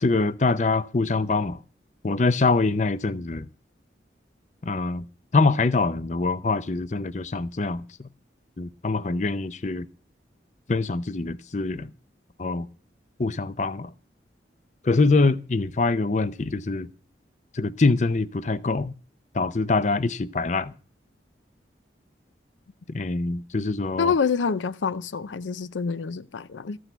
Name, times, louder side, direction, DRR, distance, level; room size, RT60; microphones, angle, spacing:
voice 1, 0.0-1.6 2.0-3.5 4.6-5.1 5.3-7.8 8.6-9.9 10.7-11.9 12.4-12.7 13.2-13.9 14.8-16.9 17.5-18.9 19.3-20.7 22.9-24.1, left 3 dB, 40° left, 0.5 m, -24 dB
voice 2, 24.0-26.8, left 5 dB, 85° left, 0.5 m, -26 dB
14.0 x 6.4 x 9.0 m
head